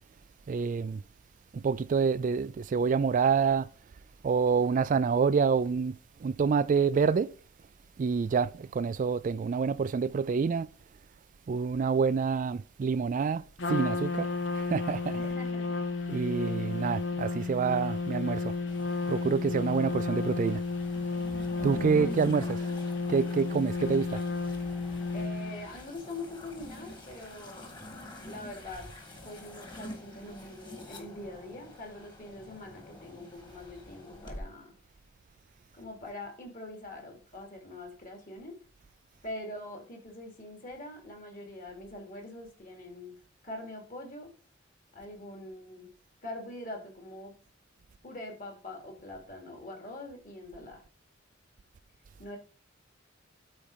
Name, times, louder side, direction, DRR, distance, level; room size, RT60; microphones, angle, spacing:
voice 1, 0.5-1.0 1.5-3.7 4.2-5.9 6.2-7.3 8.0-10.7 11.5-13.4 13.7-14.3 14.6-15.2 16.1-18.5 19.1-20.6 21.6-22.6 23.1-24.2, right 5 dB, 40° right, 0.3 m, -27 dB
Trumpet, 13.6-25.7, left 3 dB, 70° left, 0.9 m, -32 dB
voice 2, 15.1-15.7 21.5-22.7 25.1-27.7 28.2-28.9 29.2-34.7 35.7-38.6 39.2-43.1 43.4-44.3 44.9-45.9 46.2-47.3 48.0-50.8 52.2-52.4, left 1 dB, 45° left, 2.8 m, -43 dB
sound 1, 18.7-34.4, left 1 dB, 25° left, 1.9 m, -47 dB
8.6 x 4.3 x 5.6 m
head